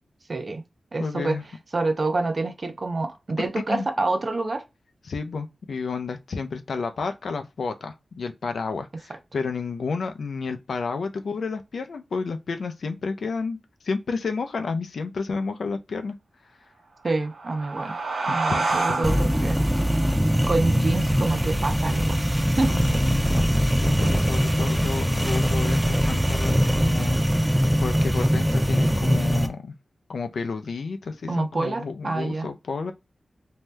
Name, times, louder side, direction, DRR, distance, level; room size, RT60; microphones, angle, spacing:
voice 1, 0.3-0.6 0.9-1.4 1.7-4.6 9.1-9.2 17.0-18.0 18.3-19.6 20.5-22.8 31.3-32.5, right 3 dB, 45° right, 0.6 m, -27 dB
voice 2, 1.0-1.4 3.7-3.9 5.1-13.6 13.8-16.1 18.3-19.3 22.7-29.7 30.1-32.9, left 4 dB, 80° left, 0.5 m, -31 dB
sound 1, 17.1-22.2, right 3 dB, 85° right, 0.7 m, -30 dB
sound 2, 19.0-29.5, equal, 5° right, 0.6 m, -22 dB
2.7 x 2.2 x 3.2 m
wide cardioid pair, 100°, 0 cm